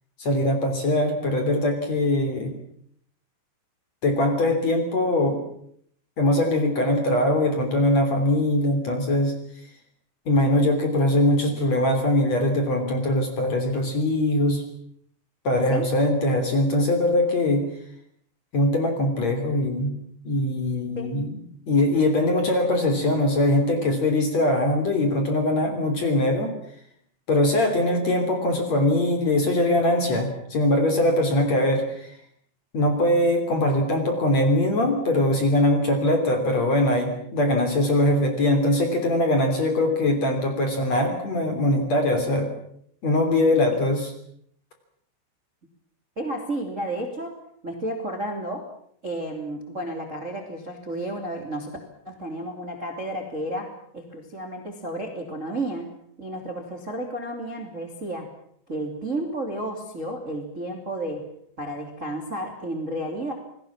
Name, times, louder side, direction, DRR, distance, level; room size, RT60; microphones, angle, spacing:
voice 1, 0.2-2.5 4.0-5.4 6.2-9.3 10.3-14.6 15.4-17.7 18.5-19.9 20.2-21.3 21.7-26.5 27.3-32.1 32.7-42.5 43.0-44.1, left 1 dB, 40° left, 5 dB, 3.7 m, -22 dB
voice 2, 46.2-47.4 47.6-48.6 49.0-51.8 52.0-55.9 56.2-58.3 58.7-61.3 61.6-63.3, right 1 dB, 20° right, 4 dB, 2.2 m, -32 dB
28.0 x 20.0 x 7.4 m, 0.67 s
omnidirectional pair, 5.8 m